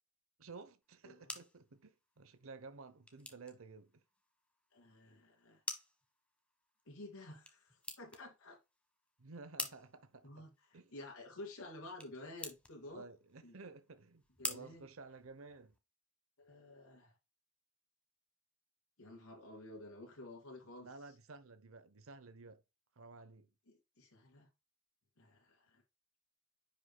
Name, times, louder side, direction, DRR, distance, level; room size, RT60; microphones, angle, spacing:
voice 1, 0.4-4.0 9.2-10.5 10.7-10.9 12.9-15.8 20.8-22.6 23.0-23.5, right 4 dB, 75° right, 0.9 m, -54 dB
sound 1, 0.8-15.8, left 2 dB, 5° left, 1.1 m, -50 dB
voice 2, 4.7-5.6 6.8-8.6 10.2-13.1 13.4-13.5 14.4-14.9 16.4-17.1 19.0-20.9 23.7-24.5 25.2-25.8, left 2 dB, 85° left, 2.8 m, -52 dB
10.0 x 5.4 x 2.2 m
head